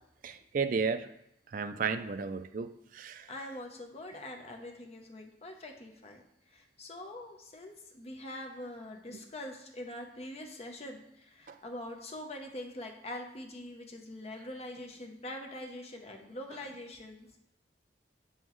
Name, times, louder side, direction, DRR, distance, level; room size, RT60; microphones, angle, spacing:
voice 1, 0.2-1.1 1.5-3.3 9.1-9.2 11.5-11.6, right 5 dB, 45° right, 10 dB, 0.4 m, -33 dB
voice 2, 3.3-6.2 6.5-17.4, left 1 dB, 35° left, 2 dB, 0.8 m, -44 dB
7.1 x 5.6 x 3.1 m, 0.81 s
head